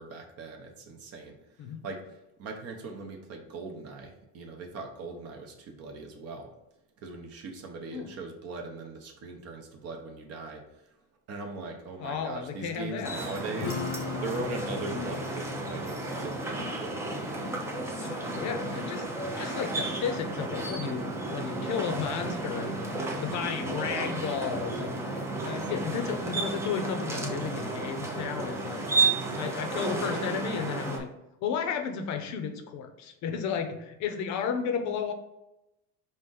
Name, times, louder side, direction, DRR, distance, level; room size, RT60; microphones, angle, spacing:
voice 1, 0.0-6.5 7.0-10.9 11.3-17.0 22.3-22.4, right 3 dB, 40° right, 2 dB, 0.7 m, -40 dB
voice 2, 12.0-13.1 18.0-25.2 25.4-29.0 29.3-31.1 31.4-35.1, left 7 dB, 50° left, 7 dB, 0.6 m, -33 dB
sound 1, 13.0-31.0, right 2 dB, 10° right, 0.4 m, -33 dB
Strum, 13.6-19.8, left 6 dB, 85° left, 0.6 m, -41 dB
5.0 x 2.5 x 3.8 m, 0.91 s
cardioid pair, 150°, 37 cm